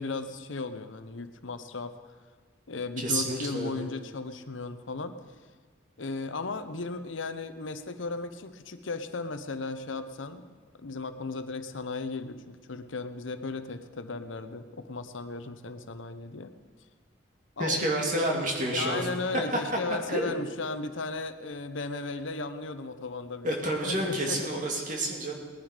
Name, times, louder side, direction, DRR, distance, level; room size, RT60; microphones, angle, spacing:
voice 1, 0.0-2.1 2.7-5.2 6.0-10.4 10.8-16.5 17.6-17.8 18.7-23.5 23.8-24.4, left 3 dB, 85° left, 10 dB, 0.8 m, -36 dB
voice 2, 3.0-3.9 17.6-19.1 20.1-20.3 23.4-25.3, right 1 dB, 40° right, 0 dB, 2.3 m, -29 dB
19.0 x 10.5 x 5.1 m, 1.4 s
head